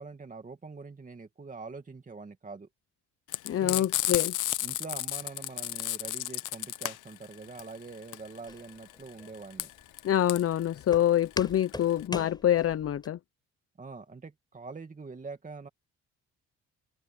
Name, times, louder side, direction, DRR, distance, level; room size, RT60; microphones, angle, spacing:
voice 1, 0.0-2.7 3.5-3.9 4.6-9.7 13.8-15.7, right 4 dB, 25° right, 2.3 m, -44 dB
Frying (food), 3.3-12.0, left 16 dB, 85° left, 0.9 m, -33 dB
voice 2, 3.4-4.3 10.0-13.2, left 11 dB, 50° left, 0.7 m, -26 dB
Walk footsteps, 8.5-13.1, left 2 dB, 15° left, 6.9 m, -42 dB
open air
cardioid pair, 90°, 30 cm